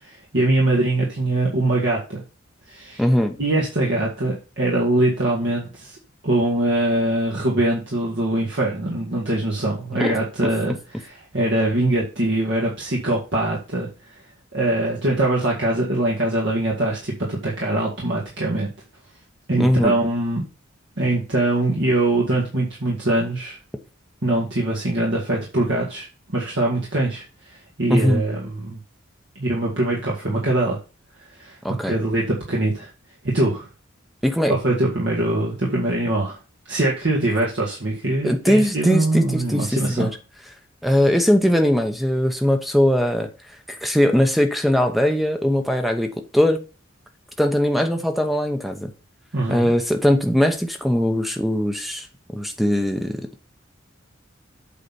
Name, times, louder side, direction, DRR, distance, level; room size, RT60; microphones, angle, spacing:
voice 1, 0.0-2.2 2.7-3.0 3.4-6.0 6.2-13.9 14.5-18.7 19.5-20.4 21.0-23.6 24.2-26.1 26.3-27.2 27.8-28.8 29.4-30.8 31.4-31.6 31.8-32.9 33.2-33.7 34.5-36.4 36.7-40.1 49.3-49.7, right 1 dB, 60° right, 2.0 m, -22 dB
voice 2, 3.0-3.4 10.0-10.1 19.6-20.0 27.9-28.2 31.6-31.9 34.2-34.5 38.2-40.1 40.8-43.3 43.7-46.6 47.4-48.9 49.5-52.1 52.3-53.2, equal, ahead, 0.9 m, -20 dB
8.3 x 4.2 x 5.9 m
head